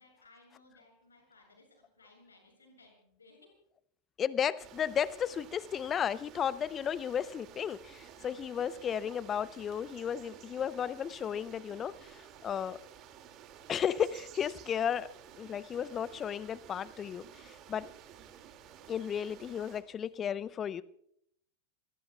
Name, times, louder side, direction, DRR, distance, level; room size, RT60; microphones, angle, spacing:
voice 1, 0.0-3.5, left 3 dB, 75° left, 1 dB, 7.4 m, -61 dB
voice 2, 4.2-12.8 13.7-15.1 15.4-17.9 18.9-20.8, left 8 dB, 25° left, 19 dB, 0.7 m, -34 dB
sound 1, 4.6-19.8, right 9 dB, 35° right, 2.3 m, -53 dB
28.0 x 21.5 x 2.3 m, 0.73 s
figure-of-eight pair, 90°, 0 cm